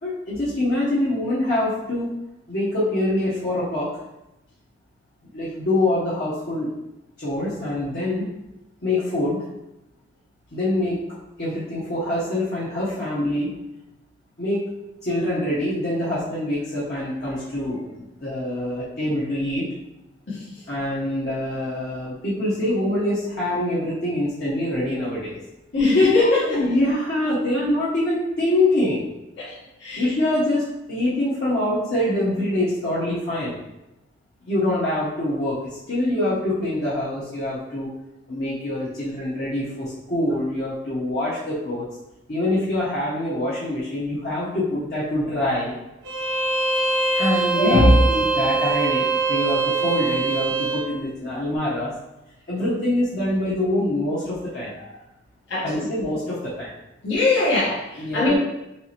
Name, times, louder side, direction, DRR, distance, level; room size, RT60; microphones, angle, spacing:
voice 1, 0.0-2.1 2.5-3.9 5.3-6.7 7.2-8.3 8.8-9.4 10.5-11.0 11.4-13.5 14.4-14.6 15.0-17.9 18.2-19.7 20.7-25.4 26.2-29.0 30.0-33.6 34.5-37.9 38.3-41.9 42.3-45.8 47.2-51.9 52.5-55.0 55.6-56.7 58.0-58.3, left 1 dB, 55° left, -9 dB, 0.9 m, -25 dB
voice 2, 25.7-26.6 29.4-29.5 29.8-30.0 47.5-47.9 55.5-55.9 57.0-57.8 58.1-58.3, left 2 dB, 70° left, -8 dB, 1.2 m, -19 dB
Bowed string instrument, 46.0-50.9, right 3 dB, 70° right, 0.7 m, -23 dB
4.6 x 3.1 x 2.9 m, 0.93 s
head